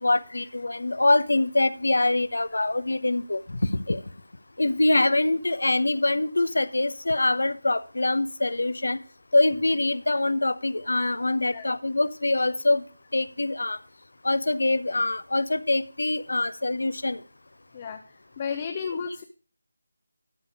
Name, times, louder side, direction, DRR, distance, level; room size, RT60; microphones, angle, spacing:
voice 1, 0.0-4.0 4.6-9.0 9.3-12.8 13.1-13.8 14.2-17.2, left 2 dB, 65° left, 16 dB, 0.9 m, -24 dB
voice 2, 18.4-19.2, left 6 dB, 25° left, 6 dB, 0.8 m, -32 dB
12.5 x 6.7 x 4.9 m, 0.39 s
figure-of-eight pair, 160°, 0 cm